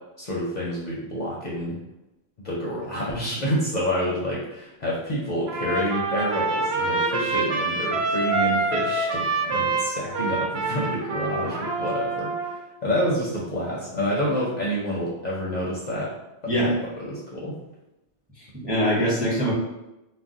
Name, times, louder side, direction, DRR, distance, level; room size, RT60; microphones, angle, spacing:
voice 1, 0.2-1.8 2.4-16.1 16.6-17.5, equal, 55° left, -5 dB, 0.5 m, -28 dB
Trumpet, 5.5-12.6, right 3 dB, 75° right, 0.9 m, -26 dB
voice 2, 18.4-19.5, equal, 10° right, -5 dB, 0.5 m, -23 dB
2.4 x 2.0 x 3.7 m, 0.96 s
omnidirectional pair, 1.1 m